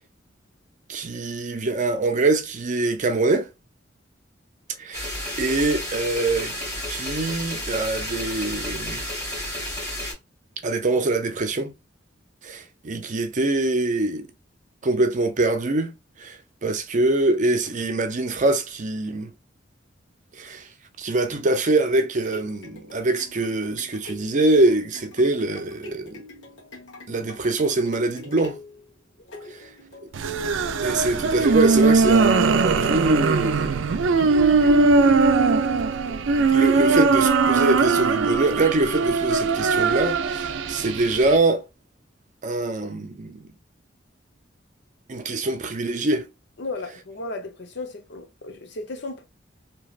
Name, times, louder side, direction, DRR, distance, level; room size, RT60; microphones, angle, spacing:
voice 1, 0.9-3.5 4.8-5.1 5.4-6.6 6.9-9.0 10.6-11.7 12.4-14.3 14.8-15.9 16.2-19.3 20.4-20.6 21.0-26.2 27.1-28.6 29.6-29.7 30.8-33.8 36.5-41.6 42.4-43.5 45.1-46.3, right 2 dB, 45° right, 0.6 m, -24 dB
sound 1, 4.9-10.1, left 1 dB, 20° left, 1.7 m, -31 dB
sound 2, 22.3-39.1 39.7-39.8, left 1 dB, 80° left, 1.2 m, -45 dB
sound 3, 30.1-41.4, right 4 dB, 90° right, 0.4 m, -20 dB
voice 2, 46.6-49.2, left 2 dB, 65° left, 0.7 m, -34 dB
3.2 x 2.9 x 2.4 m
head